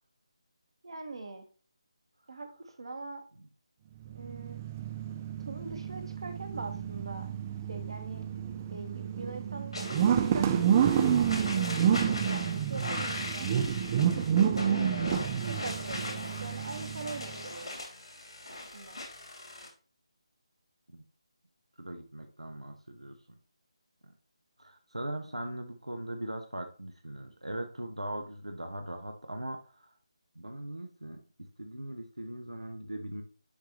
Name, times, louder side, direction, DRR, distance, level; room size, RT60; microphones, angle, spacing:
voice 1, 0.8-1.4 2.3-2.5 2.8-3.2 4.0-4.6 5.5-7.3 7.7-8.3 8.7-11.3 11.5-13.6 14.1-14.9 15.5-17.8 18.7-19.0, right 3 dB, 60° right, 6 dB, 1.4 m, -42 dB
sound 1, 4.0-17.4, right 9 dB, 25° right, 0.4 m, -29 dB
sound 2, 9.7-19.7, left 2 dB, 70° left, 2.5 m, -39 dB
voice 2, 21.8-23.1 24.6-29.9 30.3-31.2 31.6-33.2, right 1 dB, 90° right, 4 dB, 1.0 m, -40 dB
10.5 x 3.4 x 3.0 m, 0.38 s
figure-of-eight pair, 155°, 3 cm